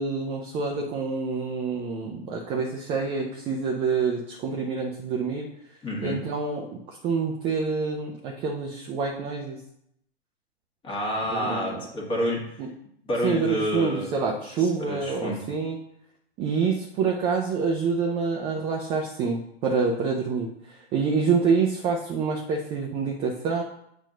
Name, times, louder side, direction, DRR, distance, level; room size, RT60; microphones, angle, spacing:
voice 1, 0.0-5.5 6.0-9.6 11.3-11.8 12.6-12.7 13.2-15.8 16.4-23.6, right 5 dB, 15° right, 0 dB, 0.4 m, -27 dB
voice 2, 5.8-6.2 10.8-12.6 13.0-14.1 14.6-15.5, equal, 15° left, -1 dB, 1.4 m, -29 dB
7.2 x 2.6 x 5.4 m, 0.75 s
figure-of-eight pair, 105°, 32 cm